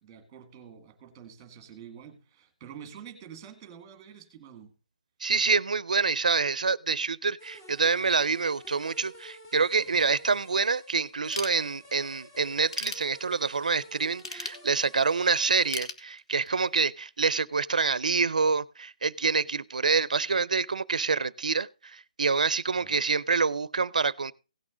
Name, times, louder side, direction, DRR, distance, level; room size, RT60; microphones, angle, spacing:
voice 1, 0.0-4.7 9.9-10.0 22.8-23.1, right 8 dB, 10° right, 1.9 m, -47 dB
voice 2, 5.2-24.3, right 4 dB, 90° right, 0.6 m, -27 dB
sound 1, 7.4-15.7, equal, 15° left, 1.8 m, -50 dB
Ratchet pawl / Tools, 11.3-12.1 12.5-13.6 14.2-15.2 15.7-16.7, left 3 dB, 45° left, 2.0 m, -37 dB
17.0 x 6.2 x 3.8 m
hypercardioid pair, 180°, 4 cm